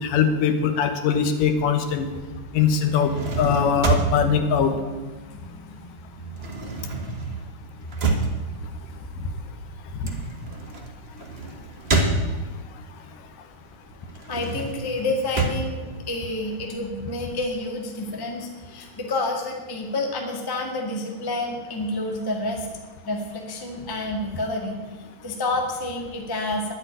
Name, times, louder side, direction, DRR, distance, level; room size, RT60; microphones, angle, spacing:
voice 1, 0.0-2.1 2.5-4.7 10.0-10.1, left 7 dB, 80° left, 8 dB, 2.7 m, -21 dB
sound 1, 2.9-5.7 5.9-12.8 13.2-16.8, right 3 dB, 45° right, 0.8 m, -28 dB
voice 2, 4.7-7.2 7.9-8.5 14.2-22.7 23.0-24.8 25.2-26.7, left 2 dB, 15° left, 2 dB, 0.8 m, -30 dB
10.5 x 8.3 x 9.4 m, 1.3 s
omnidirectional pair, 3.8 m